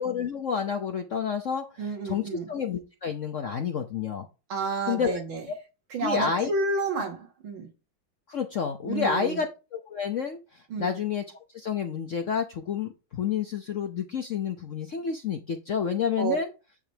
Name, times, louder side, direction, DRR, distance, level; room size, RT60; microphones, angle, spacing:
voice 1, 0.0-4.3 4.9-5.2 5.5-5.6 6.0-6.5 8.3-11.2 11.5-16.5, left 7 dB, 65° left, 0.8 m, -29 dB
voice 2, 1.8-2.5 4.5-5.4 5.9-7.7 8.9-9.4 10.7-10.9 16.2-16.4, right 3 dB, 80° right, 2.6 m, -30 dB
9.0 x 3.3 x 5.0 m
omnidirectional pair, 2.2 m